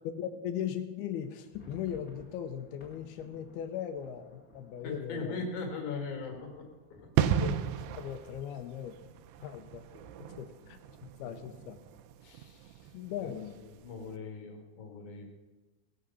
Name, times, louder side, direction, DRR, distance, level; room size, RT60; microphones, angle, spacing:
voice 1, 0.2-5.5 7.4-9.0 9.4-9.8 10.4-11.8 12.9-13.5, left 9 dB, 75° left, 8 dB, 2.4 m, -39 dB
sound 1, 1.2-8.9 9.2-9.3 9.6-9.8 10.4-10.8, left 1 dB, 20° left, 1.9 m, -58 dB
voice 2, 4.8-6.6 7.2-7.3 9.9-10.5 11.2-11.4 12.2-12.9 13.2-13.3 13.6-15.2, left 4 dB, 55° left, 2 dB, 2.9 m, -40 dB
sound 2, 7.2-13.7 13.9-14.1, right 9 dB, 80° right, 2.5 m, -34 dB
18.5 x 6.3 x 6.9 m, 1.2 s
omnidirectional pair, 5.1 m